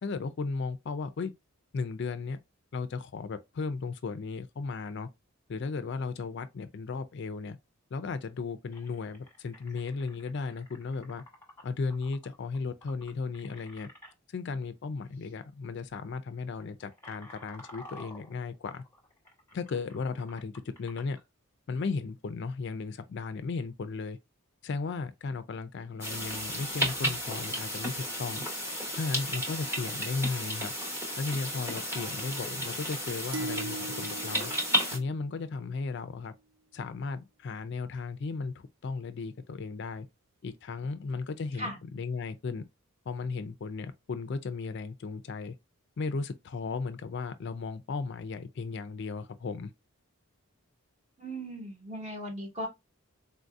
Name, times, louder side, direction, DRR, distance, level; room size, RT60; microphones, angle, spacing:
voice 1, 0.0-1.3 1.7-2.4 2.7-5.1 5.5-7.6 7.9-11.2 11.6-13.9 14.3-18.8 19.5-21.2 21.7-24.2 24.6-28.4 28.9-30.7 31.2-34.5 34.9-36.3 36.7-40.1 40.4-42.6 43.1-45.5 46.0-49.7, left 4 dB, 50° left, 0.4 m, -35 dB
sound 1, 8.7-14.1 15.1-15.3 15.6-15.9 16.4-21.2, left 1 dB, 10° left, 1.1 m, -52 dB
sound 2, 26.0-35.0, equal, 10° right, 0.8 m, -33 dB
sound 3, 33.3-35.7, right 3 dB, 65° right, 0.4 m, -40 dB
voice 2, 51.2-52.7, equal, 30° right, 1.2 m, -37 dB
3.7 x 2.6 x 2.4 m
head